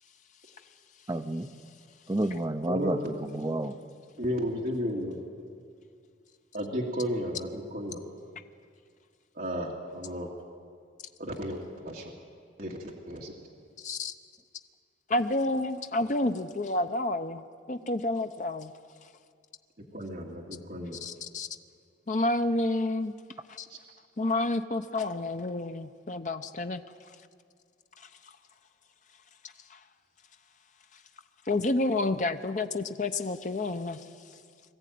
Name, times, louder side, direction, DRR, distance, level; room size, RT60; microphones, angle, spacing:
voice 1, 1.1-1.5 2.1-3.7, right 1 dB, 20° right, 9 dB, 0.6 m, -30 dB
voice 2, 2.7-3.1 4.2-5.2 6.5-8.0 9.4-10.3 11.2-12.1 12.6-13.3 19.9-21.0 23.7-23.8, equal, 50° right, -2 dB, 2.2 m, -33 dB
voice 3, 13.8-14.1 15.1-18.7 21.0-21.5 22.1-23.1 23.5-23.7 24.2-26.8 29.7-29.8 31.5-34.0, left 2 dB, 40° left, 8 dB, 0.6 m, -29 dB
21.5 x 14.5 x 9.3 m, 2.1 s
head